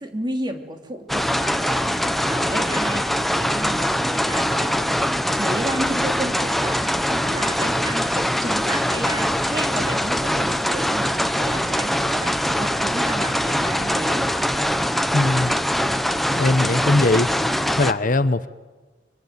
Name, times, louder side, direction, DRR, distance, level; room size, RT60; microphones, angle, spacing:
voice 1, 0.0-5.0 5.3-14.3, right 1 dB, 25° right, 4 dB, 2.9 m, -32 dB
sound 1, 1.1-17.9, equal, ahead, 0.9 m, -22 dB
voice 2, 15.1-15.5 16.3-17.3 17.8-18.5, left 2 dB, 45° left, 13 dB, 0.9 m, -20 dB
25.0 x 24.0 x 9.4 m, 1.2 s
head